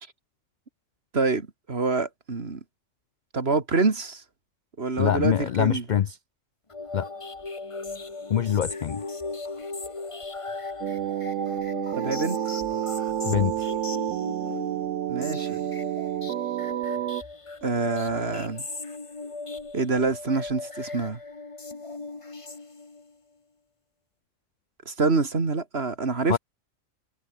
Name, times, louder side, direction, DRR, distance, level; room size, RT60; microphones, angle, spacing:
voice 1, 1.1-2.6 3.3-4.2 4.8-5.8 11.9-12.4 15.1-15.6 17.6-18.7 19.7-21.2 24.9-26.4, right 3 dB, 50° right, 2.5 m, -26 dB
voice 2, 5.0-6.2 6.9-7.1 8.3-9.0 13.2-13.7 26.3-26.4, left 9 dB, 60° left, 0.4 m, -24 dB
sound 1, 6.7-23.1, left 3 dB, 25° left, 1.3 m, -38 dB
sound 2, 10.8-17.2, right 12 dB, 70° right, 0.9 m, -29 dB
omnidirectional pair, 1.3 m